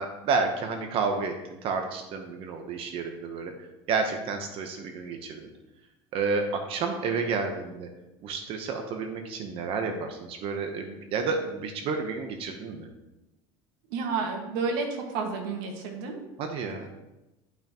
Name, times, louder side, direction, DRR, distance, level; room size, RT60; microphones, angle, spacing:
voice 1, 0.0-3.5 3.9-5.5 6.1-7.9 8.2-12.9 16.4-16.9, right 4 dB, 50° right, 5 dB, 0.9 m, -30 dB
voice 2, 13.9-16.2, right 4 dB, 85° right, 2 dB, 1.7 m, -30 dB
11.5 x 5.7 x 3.0 m, 0.99 s
cardioid pair, 145°, 12 cm